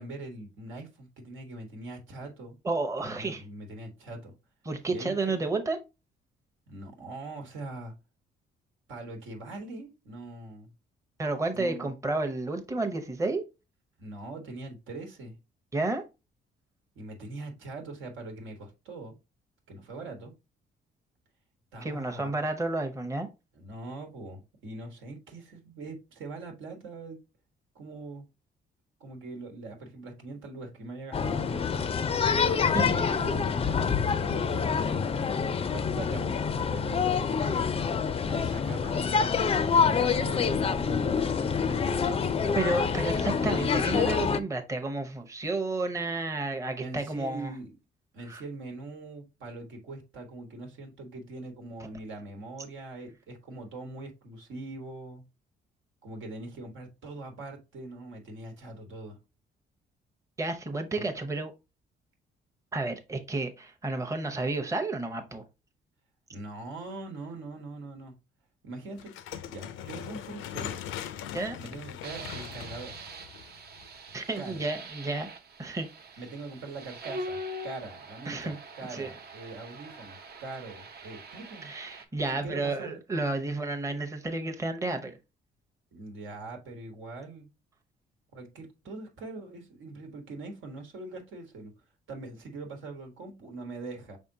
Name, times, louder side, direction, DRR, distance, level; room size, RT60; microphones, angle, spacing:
voice 1, 0.0-2.5 3.0-4.3 4.9-5.5 6.7-7.9 8.9-10.7 11.5-11.9 14.0-15.4 16.9-19.1 19.7-20.3 21.7-22.4 23.5-27.2 27.7-28.3 29.0-31.6 32.3-35.1 35.7-36.4 36.7-37.2 38.3-41.3 41.6-42.7 46.8-47.7 48.1-55.2 56.0-59.2 60.9-61.0 66.3-68.1 68.6-69.1 69.5-70.8 71.6-73.0 74.4-74.6 76.2-81.7 82.3-83.0 85.9-87.5 88.3-91.7 92.1-94.2, right 2 dB, 80° right, 1.4 m, -42 dB
voice 2, 2.6-3.4 4.7-5.8 11.2-13.4 15.7-16.0 21.8-23.3 32.7-32.9 42.5-47.5 48.3-48.4 60.4-61.5 62.7-65.4 71.3-71.6 74.1-75.3 75.6-75.9 78.3-78.6 78.9-79.1 81.6-85.2, right 2 dB, 15° right, 0.7 m, -31 dB
sound 1, 31.1-44.4, left 6 dB, 30° left, 0.4 m, -26 dB
sound 2, 69.0-74.1, left 10 dB, 90° left, 0.5 m, -40 dB
sound 3, 72.0-82.0, right 1 dB, 55° right, 0.7 m, -43 dB
5.0 x 3.6 x 2.7 m
cardioid pair, 90°, 20 cm